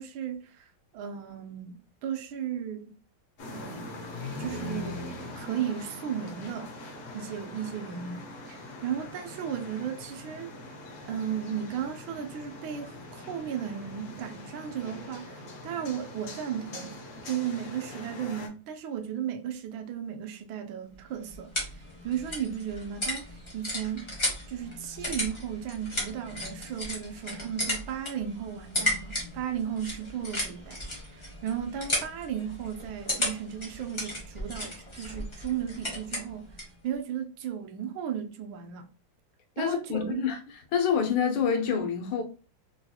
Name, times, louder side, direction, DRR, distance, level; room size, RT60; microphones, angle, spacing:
voice 1, 0.0-3.0 3.5-4.1 4.4-5.0 5.4-6.7 7.1-10.5 11.1-17.0 17.3-24.1 24.5-30.8 31.1-36.5 36.8-38.9 39.6-40.2, right 9 dB, 75° right, 1.4 m, -35 dB
sound 1, 3.4-18.5, left 2 dB, 60° left, 0.8 m, -42 dB
sound 2, 20.9-36.8, left 1 dB, 25° left, 0.7 m, -35 dB
voice 2, 39.6-40.4 40.7-42.2, left 7 dB, 80° left, 1.5 m, -26 dB
3.9 x 2.7 x 2.2 m
omnidirectional pair, 2.2 m